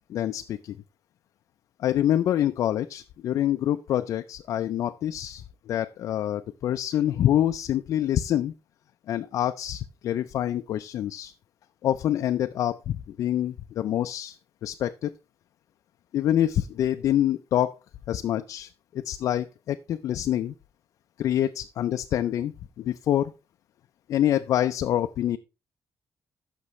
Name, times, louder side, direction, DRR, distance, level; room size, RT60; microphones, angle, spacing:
voice 1, 0.1-0.8 1.8-8.5 9.1-11.3 11.8-14.4 14.6-15.1 16.1-17.7 18.1-18.7 18.9-20.5 21.2-23.3 24.1-25.4, left 11 dB, 60° left, 8 dB, 0.4 m, -26 dB
15.0 x 6.0 x 3.1 m, 0.28 s
cardioid pair, 175°, 6 cm